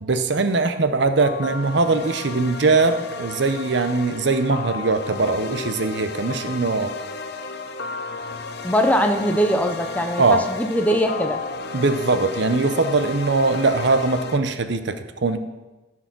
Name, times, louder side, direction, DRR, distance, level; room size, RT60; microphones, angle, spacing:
voice 1, 0.0-6.9 10.2-10.5 11.7-15.4, right 3 dB, 60° right, 9 dB, 0.7 m, -21 dB
sound 1, 1.2-14.4, left 4 dB, 55° left, 0.6 m, -33 dB
voice 2, 8.6-11.4, equal, 10° left, 5 dB, 0.5 m, -21 dB
14.0 x 4.6 x 6.0 m, 1.2 s
head